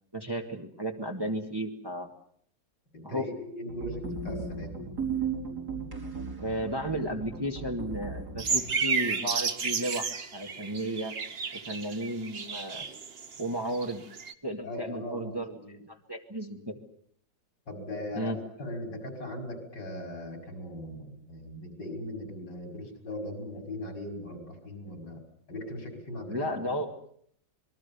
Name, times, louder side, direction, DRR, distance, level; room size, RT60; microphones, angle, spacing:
voice 1, 0.1-2.1 3.0-3.3 6.4-11.1 11.7-12.8 13.4-14.0 14.4-16.8 18.1-18.4 26.3-26.9, equal, 15° right, 3 dB, 2.2 m, -34 dB
voice 2, 2.9-4.8 14.6-15.8 17.7-25.2 25.5-26.7, left 1 dB, 75° left, 4 dB, 6.5 m, -39 dB
sound 1, 3.7-8.7, right 5 dB, 60° right, 5.5 m, -36 dB
sound 2, 8.4-13.4 13.7-14.3, right 5 dB, 40° right, 1.2 m, -32 dB
26.5 x 22.0 x 7.1 m, 0.62 s
omnidirectional pair, 1.9 m